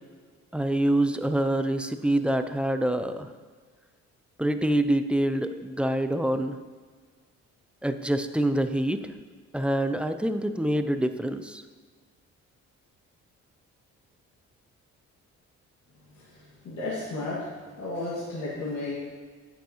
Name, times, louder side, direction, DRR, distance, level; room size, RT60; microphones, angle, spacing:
voice 1, 0.5-3.3 4.4-6.6 7.8-9.0 9.5-11.6, right 1 dB, 5° right, 9 dB, 0.4 m, -26 dB
voice 2, 16.1-17.5 17.8-19.1, left 2 dB, 70° left, -8 dB, 2.1 m, -33 dB
9.1 x 6.9 x 3.0 m, 1.6 s
cardioid pair, 90°, 30 cm